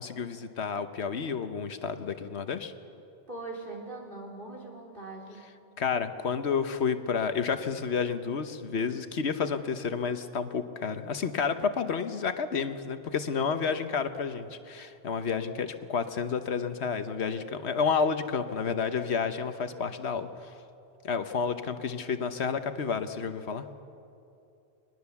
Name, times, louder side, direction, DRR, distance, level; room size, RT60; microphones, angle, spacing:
voice 1, 0.0-2.7 5.8-20.5 21.0-23.7, left 6 dB, 75° left, 9 dB, 1.3 m, -30 dB
voice 2, 3.3-5.4, right 2 dB, 50° right, -2 dB, 3.8 m, -41 dB
22.5 x 20.5 x 7.1 m, 2.7 s
omnidirectional pair, 1.1 m